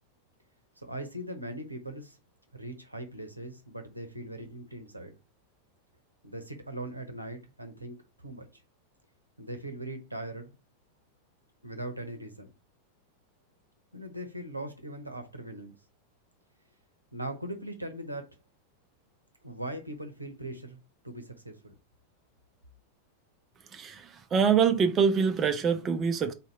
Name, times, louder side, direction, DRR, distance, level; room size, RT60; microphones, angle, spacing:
voice 1, 0.8-2.2 2.5-5.1 6.2-8.6 9.4-10.6 11.6-12.5 13.9-15.7 17.1-18.3 19.4-20.8 21.0-21.8, right 1 dB, 85° right, 0.8 m, -40 dB
voice 2, 23.7-26.3, right 6 dB, 25° right, 0.6 m, -25 dB
4.1 x 2.7 x 4.5 m
figure-of-eight pair, 90°, 0 cm